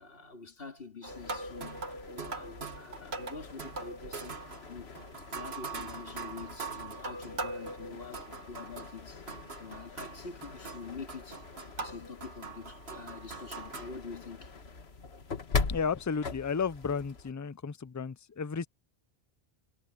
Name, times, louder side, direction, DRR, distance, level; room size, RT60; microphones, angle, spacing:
voice 1, 0.0-4.9 5.3-9.3 9.6-11.4 11.8-14.6, left 4 dB, 70° left, 2.5 m, -46 dB
sound 1, 1.0-9.0 9.3-13.9, right 4 dB, 80° right, 2.0 m, -42 dB
sound 2, 1.1-17.3, left 4 dB, 90° left, 1.9 m, -42 dB
voice 2, 15.7-18.7, left 6 dB, 30° left, 0.3 m, -33 dB
omnidirectional pair, 1.0 m